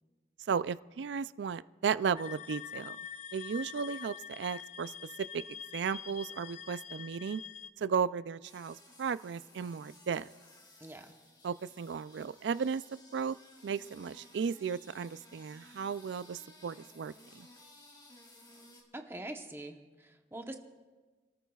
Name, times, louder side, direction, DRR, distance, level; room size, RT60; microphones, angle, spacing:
voice 1, 0.5-3.0 3.3-7.4 7.8-10.3 11.4-12.8 13.1-13.4 13.6-17.5, right 6 dB, 70° right, 16 dB, 0.4 m, -35 dB
sound 1, 2.2-7.7, left 8 dB, 40° left, 0.5 m, -45 dB
sound 2, 8.4-18.8, left 2 dB, 25° left, 2.5 m, -58 dB
voice 2, 10.8-11.1 18.9-20.6, right 1 dB, 15° right, 4 dB, 0.9 m, -44 dB
29.5 x 13.5 x 2.4 m, 1.3 s
head